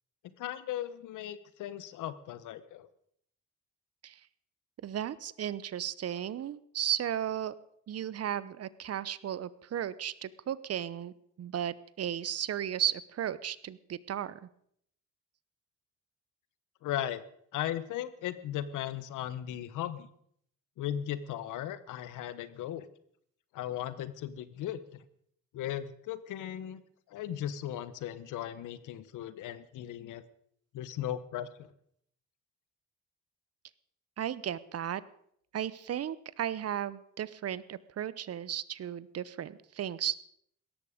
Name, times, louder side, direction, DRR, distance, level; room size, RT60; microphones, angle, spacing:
voice 1, 0.4-2.9 16.8-17.2 17.5-20.1 20.8-22.9 23.5-25.0 25.5-26.8 27.1-30.2 30.7-31.5, left 11 dB, 85° left, 15 dB, 1.1 m, -37 dB
voice 2, 4.8-7.5 7.9-14.5 34.2-35.0 35.5-40.2, right 10 dB, 55° right, 18 dB, 0.8 m, -35 dB
17.5 x 13.5 x 5.1 m, 0.68 s
cardioid pair, 90°, 30 cm